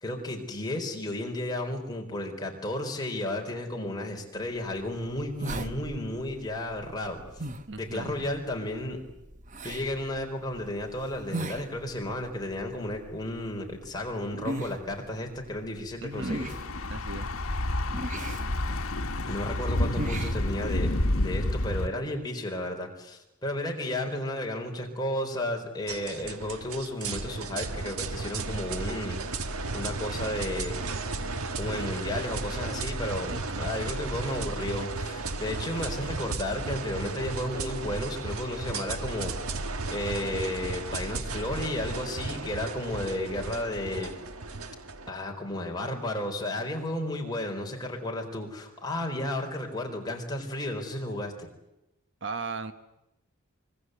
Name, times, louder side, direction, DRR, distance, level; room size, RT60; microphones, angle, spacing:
voice 1, 0.0-7.2 7.8-9.0 9.6-16.5 19.3-20.9 21.2-30.7 31.6-44.1 45.1-51.5, left 1 dB, 20° left, 1 dB, 4.2 m, -33 dB
sound 1, 4.5-21.1, right 2 dB, 35° right, 1.1 m, -41 dB
voice 2, 7.7-8.3 16.0-16.4 16.9-17.3 33.3-33.7 52.2-52.7, right 3 dB, 55° right, 10 dB, 1.2 m, -37 dB
Thunder / Bicycle, 16.1-21.9, left 1 dB, 75° left, 1.5 m, -29 dB
sound 2, 25.9-45.1, right 3 dB, 85° right, 1.5 m, -34 dB
25.0 x 23.5 x 8.1 m, 0.92 s
head